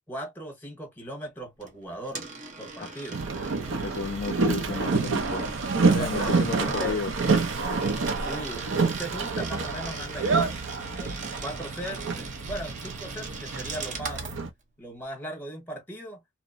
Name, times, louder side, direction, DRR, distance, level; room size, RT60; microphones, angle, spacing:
voice 1, 0.1-2.3 2.6-3.2 4.7-5.0 5.8-6.3 6.6-7.0 8.2-10.6 10.9-14.2 14.8-16.2, equal, 10° left, 1.0 m, -38 dB
Coin (dropping), 1.6-14.4, right 4 dB, 40° right, 0.7 m, -41 dB
Boat Water vehicle, 3.1-14.5, right 4 dB, 80° right, 0.6 m, -28 dB
voice 2, 3.8-5.5 5.9-7.1, left 4 dB, 50° left, 0.3 m, -33 dB
2.8 x 2.0 x 2.4 m
head